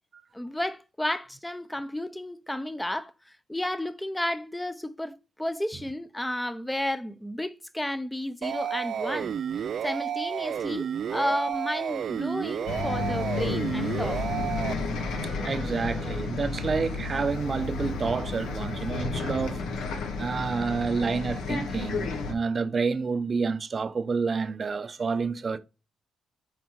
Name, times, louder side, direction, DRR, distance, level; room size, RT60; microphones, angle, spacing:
voice 1, 0.3-14.2, left 1 dB, 5° left, 0.8 m, -32 dB
sound 1, 8.4-14.7, right 8 dB, 60° right, 0.3 m, -31 dB
Bus, 12.7-22.3, left 3 dB, 85° left, 1.7 m, -32 dB
voice 2, 15.0-19.6 20.2-25.6, right 5 dB, 40° right, 0.8 m, -29 dB
8.1 x 4.3 x 4.7 m
cardioid pair, 90°, 0 cm